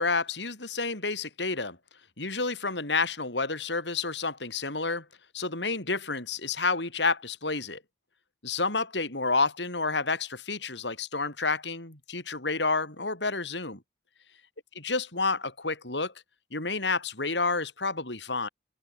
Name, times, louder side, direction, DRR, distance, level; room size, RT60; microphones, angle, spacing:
voice 1, 0.0-1.8 2.2-5.0 5.3-7.8 8.4-13.8 14.8-16.1 16.5-18.5, left 3 dB, 85° left, 6.4 m, -29 dB
open air
head